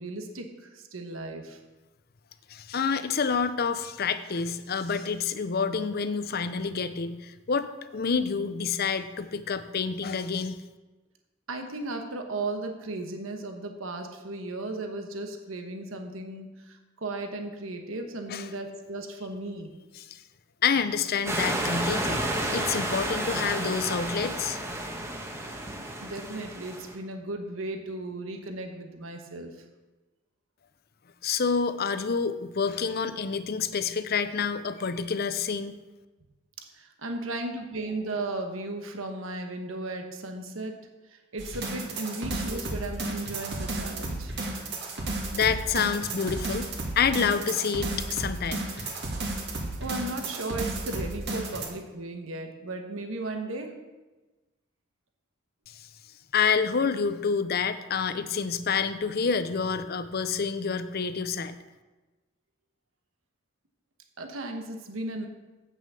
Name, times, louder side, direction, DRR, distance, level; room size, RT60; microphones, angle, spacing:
voice 1, 0.0-1.6 11.5-19.7 26.0-29.6 36.7-44.3 49.8-53.7 64.2-65.3, right 2 dB, 90° right, 4 dB, 1.2 m, -36 dB
voice 2, 2.5-10.6 18.3-18.5 20.1-20.2 20.6-24.6 31.2-35.7 45.3-46.7 47.0-49.0 55.7-55.9 56.3-61.5, left 6 dB, 50° left, 12 dB, 0.6 m, -28 dB
sound 1, 21.3-26.9, right 1 dB, 15° right, 1.1 m, -31 dB
sound 2, 41.4-51.7, right 2 dB, 60° right, 2.0 m, -33 dB
8.6 x 6.3 x 6.8 m, 1.2 s
head